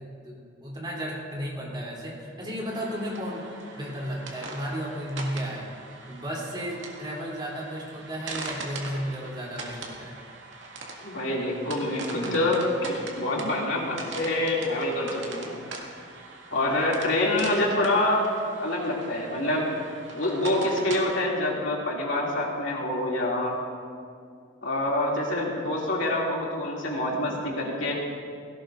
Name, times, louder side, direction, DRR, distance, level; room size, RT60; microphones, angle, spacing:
voice 1, 0.0-5.7 6.1-10.1, equal, 25° right, -4 dB, 3.3 m, -34 dB
sound 1, 2.7-21.0, right 3 dB, 80° right, 2.1 m, -41 dB
voice 2, 11.0-15.5 16.5-18.3 18.6-19.7 20.1-23.5 24.6-27.9, left 1 dB, 80° left, -3 dB, 2.7 m, -26 dB
17.5 x 17.0 x 2.6 m, 2.3 s
head